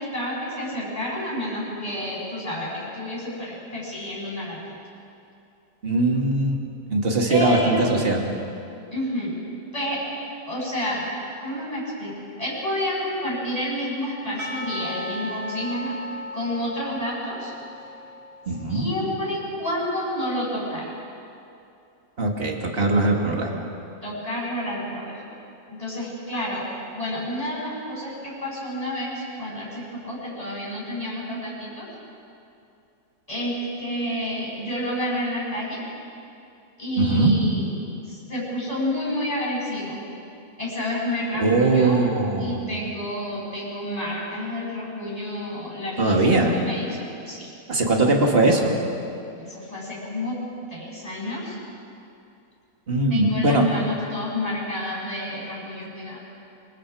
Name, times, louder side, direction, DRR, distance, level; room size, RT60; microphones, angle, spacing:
voice 1, 0.0-4.8 7.3-7.9 8.9-9.4 9.7-10.0 10.5-11.1 11.4-15.9 16.3-17.5 18.7-20.9 24.0-25.2 25.7-31.9 33.3-35.8 36.8-37.7 38.1-40.0 40.6-42.1 42.4-47.5 49.4-50.4 50.7-51.6 53.1-56.2, left 1 dB, 20° left, -5 dB, 8.3 m, -29 dB
voice 2, 5.8-6.6 6.9-8.3 18.5-18.9 22.2-23.7 37.0-37.3 41.3-42.6 46.0-46.5 47.7-48.7 52.9-53.7, right 2 dB, 35° right, 1 dB, 2.6 m, -20 dB
Percussion / Church bell, 14.4-19.2, left 1 dB, 70° right, 2.5 m, -36 dB
27.5 x 25.5 x 5.0 m, 2.6 s
omnidirectional pair, 1.8 m